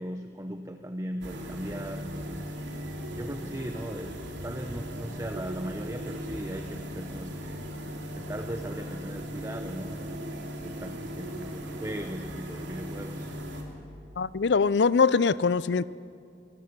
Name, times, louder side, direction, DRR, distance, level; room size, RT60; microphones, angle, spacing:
voice 1, 0.0-2.5 3.2-4.2 4.4-7.6 8.2-13.3, right 1 dB, 15° right, 6 dB, 0.7 m, -38 dB
sound 1, 1.2-13.6, equal, 75° right, 3.0 m, -38 dB
voice 2, 14.2-15.9, left 5 dB, 70° left, 19 dB, 0.5 m, -23 dB
25.0 x 20.0 x 6.8 m, 2.5 s
head